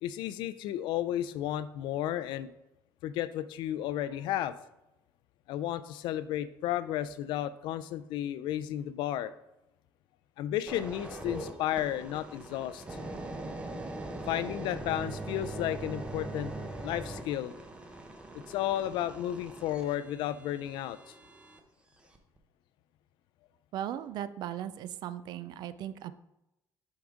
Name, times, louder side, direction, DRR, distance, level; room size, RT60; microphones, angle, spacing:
voice 1, 0.0-2.5 3.0-4.6 5.5-9.3 10.4-12.8 14.3-16.5 16.8-17.5 18.3-21.0, left 12 dB, 80° left, 14 dB, 0.4 m, -33 dB
sound 1, 10.7-21.6 22.1-22.4, right 2 dB, 15° right, 0.7 m, -41 dB
voice 2, 23.7-26.1, right 11 dB, 65° right, 14 dB, 0.4 m, -37 dB
6.2 x 4.8 x 3.6 m, 0.90 s
cardioid pair, 140°, 8 cm